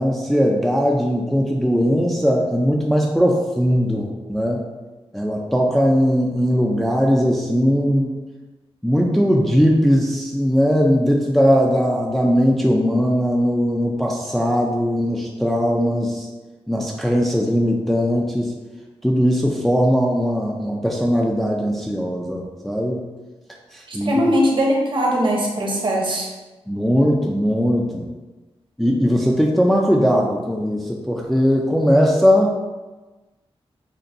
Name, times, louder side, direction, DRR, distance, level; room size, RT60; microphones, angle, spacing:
voice 1, 0.0-4.7 5.1-8.1 8.8-16.3 16.7-18.5 19.0-23.1 23.7-24.2 26.7-28.1 28.8-32.6, equal, ahead, -1 dB, 0.4 m, -19 dB
voice 2, 23.9-26.3, equal, 50° right, -1 dB, 0.9 m, -20 dB
6.5 x 2.2 x 2.6 m, 1.2 s
wide cardioid pair, 135°, 10 cm